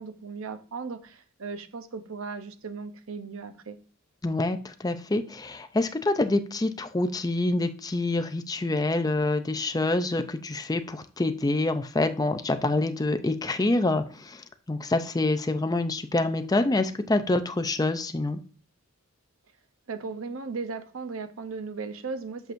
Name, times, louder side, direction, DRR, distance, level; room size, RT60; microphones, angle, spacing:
voice 1, 0.0-3.8 19.9-22.5, right 4 dB, 65° right, 9 dB, 0.7 m, -36 dB
voice 2, 4.2-14.4 14.7-18.4, left 2 dB, 15° left, 9 dB, 0.5 m, -26 dB
8.0 x 5.9 x 2.6 m, 0.40 s
head